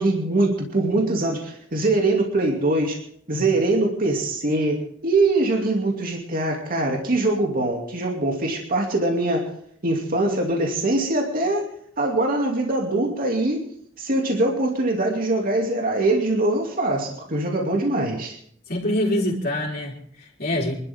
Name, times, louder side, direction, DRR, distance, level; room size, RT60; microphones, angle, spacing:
voice 1, 0.0-3.0 3.3-9.5 9.8-11.7 12.0-13.6 14.0-18.4, right 2 dB, 50° right, 1 dB, 2.6 m, -22 dB
voice 2, 18.7-20.7, left 1 dB, 50° left, -4 dB, 4.3 m, -25 dB
25.5 x 12.5 x 3.7 m, 0.63 s
head